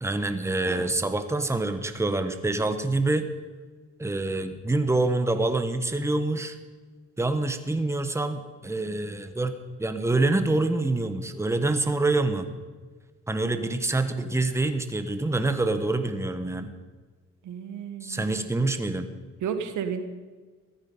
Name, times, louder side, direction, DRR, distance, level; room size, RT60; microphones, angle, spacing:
voice 1, 0.0-3.3 4.0-6.6 7.2-9.5 9.8-12.5 13.3-16.7 18.0-19.1, right 2 dB, 10° right, 9 dB, 1.2 m, -26 dB
voice 2, 17.4-18.5 19.4-20.0, right 7 dB, 80° right, 8 dB, 1.6 m, -32 dB
14.5 x 13.0 x 5.6 m, 1.4 s
cardioid pair, 90°, 30 cm